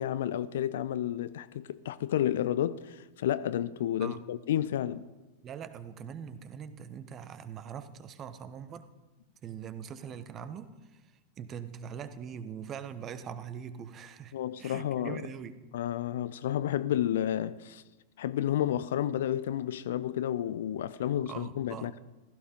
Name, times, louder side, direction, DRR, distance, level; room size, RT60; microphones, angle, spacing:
voice 1, 0.0-5.1 14.3-15.3 15.7-17.8 18.2-22.0, left 11 dB, 60° left, 0.6 m, -31 dB
voice 2, 5.4-8.9 9.4-11.0 11.4-15.5 21.3-22.0, right 8 dB, 30° right, 1.2 m, -42 dB
15.5 x 14.5 x 5.4 m
figure-of-eight pair, 90°, 0 cm